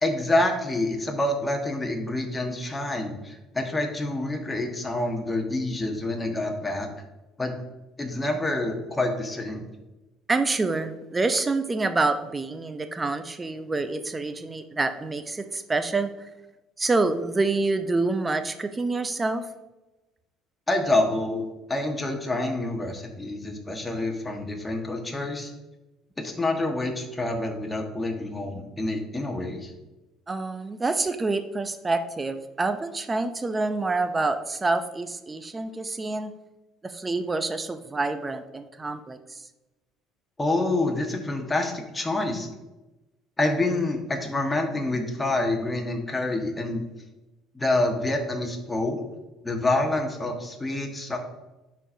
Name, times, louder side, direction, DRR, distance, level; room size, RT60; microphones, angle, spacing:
voice 1, 0.0-6.9 7.4-7.5 8.0-9.6 20.7-25.5 26.2-29.7 40.4-42.5 43.4-46.8 47.5-49.0 49.4-51.2, left 2 dB, 15° left, 3 dB, 1.4 m, -27 dB
voice 2, 10.3-16.1 16.8-19.5 30.3-36.3 36.8-39.4, right 3 dB, 25° right, 10 dB, 0.5 m, -27 dB
9.8 x 4.4 x 2.7 m, 1.0 s
hypercardioid pair, 60°, 0 cm